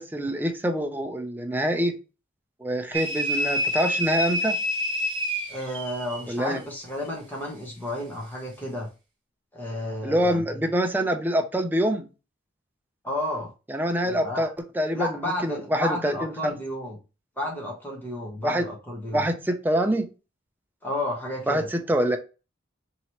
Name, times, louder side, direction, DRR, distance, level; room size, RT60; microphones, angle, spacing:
voice 1, 0.0-1.9 2.6-4.6 6.3-6.6 10.0-12.1 13.7-14.5 14.8-16.5 18.4-18.7 19.1-20.1 21.5-22.2, equal, 10° right, 4 dB, 0.5 m, -25 dB
sound 1, 2.9-6.3, equal, 25° right, 1.3 m, -27 dB
voice 2, 5.5-8.9 9.5-10.6 13.0-13.5 14.0-14.5 14.9-17.0 17.4-19.2 20.8-21.7, left 1 dB, 10° left, -3 dB, 0.9 m, -32 dB
3.0 x 2.9 x 4.4 m, 0.31 s
head